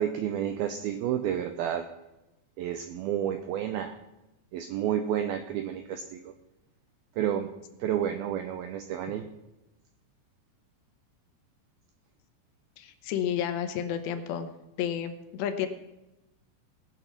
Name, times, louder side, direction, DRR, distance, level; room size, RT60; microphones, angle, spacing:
voice 1, 0.0-1.9 2.6-3.9 4.5-6.3 7.2-7.5 7.8-9.3, right 10 dB, 90° right, 8 dB, 2.1 m, -30 dB
voice 2, 12.8-14.5 14.8-15.7, left 9 dB, 75° left, 8 dB, 3.0 m, -31 dB
19.5 x 6.8 x 5.8 m, 0.96 s
omnidirectional pair, 5.2 m